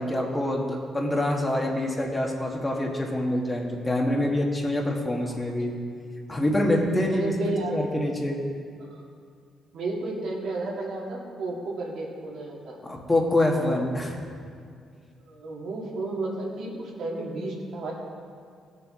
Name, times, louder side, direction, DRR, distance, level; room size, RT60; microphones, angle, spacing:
voice 1, 0.0-5.7 6.3-7.3 7.7-8.4 12.8-14.2, left 1 dB, 20° left, 0 dB, 1.6 m, -25 dB
voice 2, 6.9-7.9 8.9-9.0 9.7-12.8 15.3-17.9, right 2 dB, 75° right, -3 dB, 2.0 m, -32 dB
16.5 x 6.8 x 3.7 m, 2.3 s
cardioid pair, 90°, 0 cm